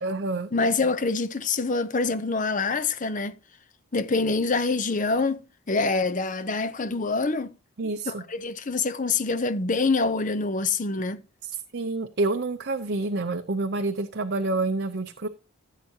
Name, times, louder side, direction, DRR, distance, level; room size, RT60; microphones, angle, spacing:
voice 1, 0.0-0.5 7.8-8.2 11.4-15.3, right 2 dB, 50° right, 0.6 m, -28 dB
voice 2, 0.5-3.3 3.9-7.5 8.1-11.2, left 3 dB, 35° left, 0.7 m, -25 dB
15.0 x 7.5 x 2.8 m
head